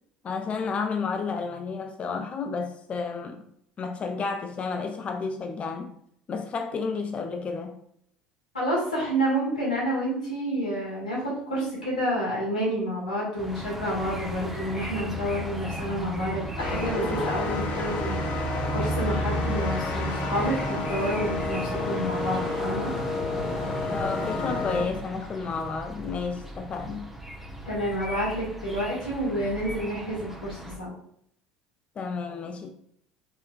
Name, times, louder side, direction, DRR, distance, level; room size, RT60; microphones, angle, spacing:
voice 1, 0.2-3.4 3.8-5.9 6.3-7.8 23.9-27.1 32.0-32.7, left 4 dB, 30° left, 5 dB, 0.4 m, -31 dB
voice 2, 8.5-18.2 18.7-22.9 27.6-30.9, equal, 90° left, -6 dB, 1.6 m, -29 dB
sound 1, 13.4-30.8, equal, 5° right, 0.7 m, -34 dB
sound 2, 16.6-24.9, left 3 dB, 50° left, 0.9 m, -31 dB
4.0 x 3.8 x 2.5 m, 0.72 s
figure-of-eight pair, 65°, 4 cm